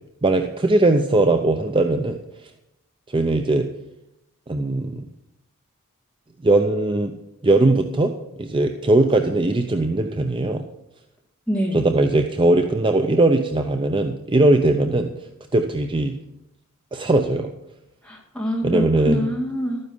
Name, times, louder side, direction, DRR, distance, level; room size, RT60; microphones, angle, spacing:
voice 1, 0.2-2.2 3.1-3.7 4.5-5.1 6.4-7.1 7.4-10.6 11.7-15.1 15.5-16.1 16.9-17.5 18.6-19.3, right 2 dB, 25° right, 6 dB, 0.6 m, -19 dB
voice 2, 11.5-11.9 18.1-19.8, equal, 5° left, -2 dB, 2.1 m, -25 dB
12.5 x 9.4 x 5.4 m, 0.87 s
head